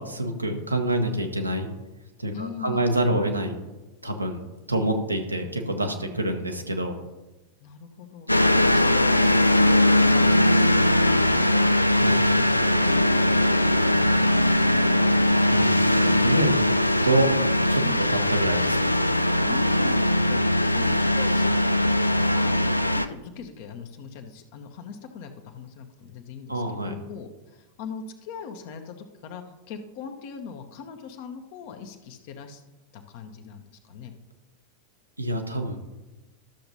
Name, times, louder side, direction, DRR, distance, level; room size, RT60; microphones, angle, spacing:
voice 1, 0.0-1.7 2.2-3.6 4.0-4.4 4.7-6.9 12.0-12.2 15.5-16.6 17.0-17.3 17.7-17.8 18.1-19.0 26.5-27.0 35.2-35.8, right 1 dB, 85° right, 4 dB, 1.0 m, -26 dB
voice 2, 2.3-2.8 6.0-6.1 7.6-11.8 17.8-18.0 19.4-22.6 22.9-32.6 32.9-34.1, left 6 dB, 50° left, 6 dB, 0.9 m, -41 dB
sound 1, 8.3-23.1, left 1 dB, 85° left, 0.3 m, -20 dB
13.0 x 6.8 x 2.7 m, 1.1 s
figure-of-eight pair, 90°, 0 cm